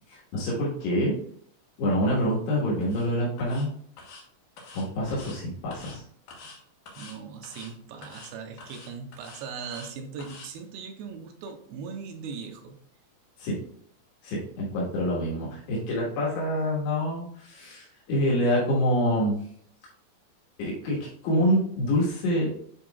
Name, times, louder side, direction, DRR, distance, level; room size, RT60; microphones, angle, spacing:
voice 1, 0.1-1.2 1.8-3.7 4.7-6.0 13.4-13.6 14.2-19.4 20.6-22.5, equal, 80° left, -6 dB, 3.7 m, -26 dB
sound 1, 2.8-3.1 3.4-3.7 4.0-4.2 4.6-5.4 5.7-6.0 6.3-6.6 6.9-7.2 7.4-7.7 8.0-8.3 8.6-9.9 10.2-10.5, left 3 dB, 60° left, 2.5 m, -46 dB
voice 2, 7.0-12.8 16.1-16.2, right 6 dB, 80° right, 5 dB, 2.4 m, -39 dB
9.9 x 4.5 x 2.3 m, 0.64 s
omnidirectional pair, 4.8 m